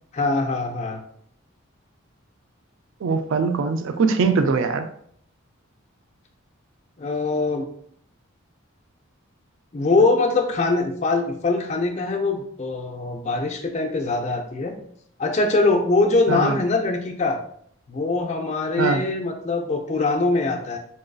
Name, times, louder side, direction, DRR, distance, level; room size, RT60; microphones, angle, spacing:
voice 1, 0.1-1.0 7.0-7.7 9.7-14.7 15.2-17.4 17.9-20.8, left 3 dB, 30° left, 3 dB, 0.4 m, -22 dB
voice 2, 3.0-4.9 16.3-16.6 18.8-19.0, right 4 dB, 60° right, 8 dB, 0.3 m, -22 dB
3.9 x 2.5 x 2.2 m, 0.64 s
head